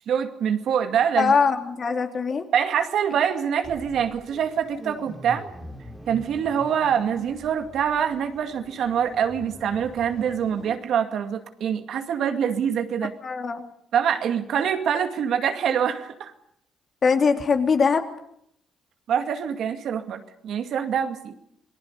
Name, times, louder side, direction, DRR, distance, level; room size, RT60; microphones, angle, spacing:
voice 1, 0.1-1.3 2.5-5.5 6.1-13.1 13.9-16.3 19.1-21.3, right 8 dB, 70° right, 6 dB, 2.2 m, -25 dB
voice 2, 1.2-2.4 13.2-13.6 17.0-18.0, left 5 dB, 45° left, 4 dB, 3.2 m, -21 dB
sound 1, 3.6-10.8, right 1 dB, 10° right, 3.5 m, -43 dB
27.0 x 19.0 x 6.7 m, 0.72 s
cardioid pair, 90°, 0 cm